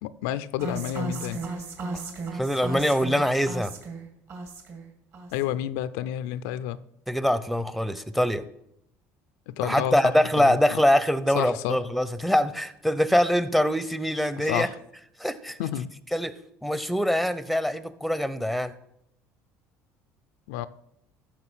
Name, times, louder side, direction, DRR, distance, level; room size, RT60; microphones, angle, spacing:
voice 1, 0.0-1.4 5.3-6.8 9.5-10.8 11.3-11.8 14.4-14.8 15.6-15.9 20.5-20.7, left 12 dB, 90° left, 0.5 m, -30 dB
sound 1, 0.6-4.9 5.1-5.6, right 3 dB, 50° right, 2.5 m, -35 dB
voice 2, 2.3-3.7 7.1-8.4 9.6-14.7 15.2-15.6 16.1-16.4 16.6-18.7, equal, ahead, 0.7 m, -24 dB
14.5 x 6.1 x 6.2 m
cardioid pair, 115°, 6 cm